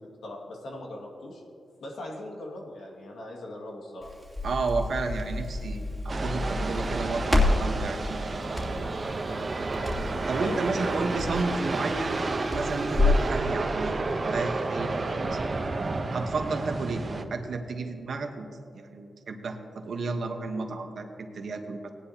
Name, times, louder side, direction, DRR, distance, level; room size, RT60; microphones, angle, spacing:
voice 1, 0.2-1.4 1.8-4.1 10.4-10.6, left 1 dB, 90° left, -1 dB, 2.0 m, -39 dB
Crackle, 4.0-13.3, left 2 dB, 10° left, 2.9 m, -29 dB
voice 2, 4.4-8.9 10.3-12.2 12.5-14.0 14.3-15.4 16.1-18.5 18.7-21.9, right 3 dB, 70° right, 5 dB, 1.1 m, -32 dB
sound 1, 6.1-17.2, right 3 dB, 40° right, 0.8 m, -31 dB
18.0 x 10.0 x 2.9 m, 2.5 s
cardioid pair, 80°, 0 cm